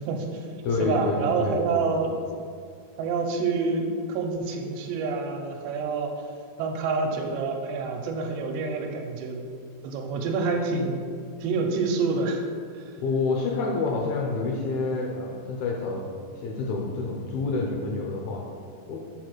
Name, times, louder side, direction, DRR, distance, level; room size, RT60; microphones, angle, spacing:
voice 1, 0.0-0.5 0.8-2.2 3.0-6.1 6.6-9.4 9.8-11.1 11.4-12.5 12.8-12.9, right 4 dB, 85° right, 3 dB, 2.8 m, -27 dB
voice 2, 0.6-1.9 13.0-18.4 18.9-19.0, left 3 dB, 80° left, 0 dB, 2.3 m, -28 dB
6.6 x 4.8 x 6.1 m, 2.2 s
omnidirectional pair, 5.0 m